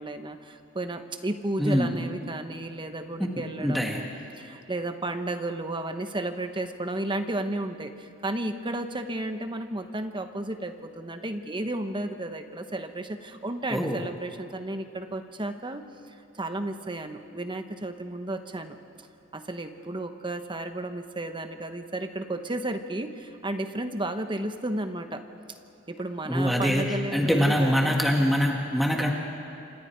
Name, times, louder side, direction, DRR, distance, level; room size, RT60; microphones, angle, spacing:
voice 1, 0.0-4.1 4.4-15.8 16.3-18.8 19.3-25.2 25.5-25.6 25.9-28.0, right 1 dB, 25° right, 7 dB, 1.1 m, -33 dB
voice 2, 1.6-1.9 3.6-4.0 13.7-14.0 26.3-26.8 27.1-29.1, equal, ahead, 0 dB, 1.7 m, -24 dB
27.5 x 26.0 x 4.6 m, 2.9 s
head